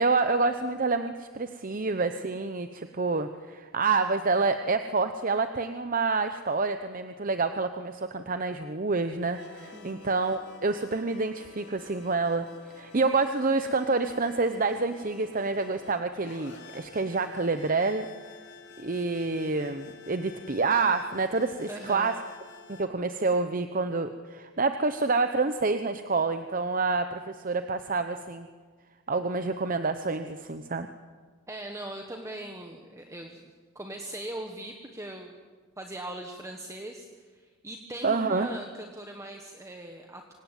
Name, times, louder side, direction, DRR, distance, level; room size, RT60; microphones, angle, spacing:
voice 1, 0.0-12.5 12.7-18.1 18.8-22.1 22.7-28.5 29.1-30.9 38.0-38.5, right 3 dB, 40° right, 8 dB, 0.9 m, -28 dB
sound 1, 9.2-22.8, left 5 dB, 55° left, 3.5 m, -50 dB
voice 2, 9.7-10.1 21.7-22.1 31.5-35.3 35.8-40.3, right 1 dB, 15° right, 3 dB, 1.4 m, -40 dB
25.0 x 18.0 x 9.2 m, 1.5 s
head